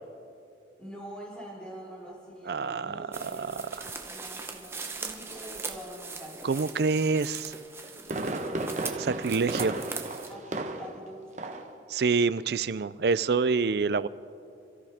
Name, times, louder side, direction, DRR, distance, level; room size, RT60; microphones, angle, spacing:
voice 1, 0.8-6.4 8.0-8.8 10.3-11.6, right 1 dB, 5° left, -5 dB, 4.3 m, -45 dB
voice 2, 2.5-3.8 6.4-7.5 9.0-9.8 11.9-14.1, right 4 dB, 60° right, 16 dB, 0.4 m, -27 dB
sound 1, 3.1-10.3, right 4 dB, 15° right, 0.9 m, -40 dB
Fireworks, 7.6-11.1 11.4-11.7 12.1-12.2, right 2 dB, 40° right, 0.9 m, -34 dB
28.0 x 14.0 x 3.6 m, 2.6 s
head